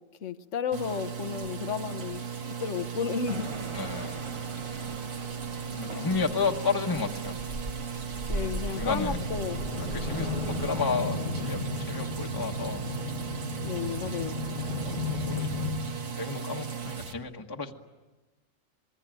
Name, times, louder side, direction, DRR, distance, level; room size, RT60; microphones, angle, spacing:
voice 1, 0.2-2.2 2.6-3.5 5.9-6.4 8.3-9.6 13.6-14.4, left 7 dB, 70° left, 10 dB, 1.4 m, -33 dB
sound 1, 0.7-17.1, right 7 dB, 80° right, 1.8 m, -37 dB
sound 2, 3.3-10.9, right 2 dB, 25° right, 0.9 m, -40 dB
voice 2, 3.7-4.2 5.6-7.4 8.8-9.3 9.8-12.8 14.6-15.0 15.2-15.7 16.1-17.7, left 4 dB, 20° left, 2 dB, 1.2 m, -32 dB
sound 3, 8.7-15.8, left 4 dB, 40° left, 1.6 m, -34 dB
27.0 x 22.0 x 9.2 m, 1.2 s
omnidirectional pair, 1.4 m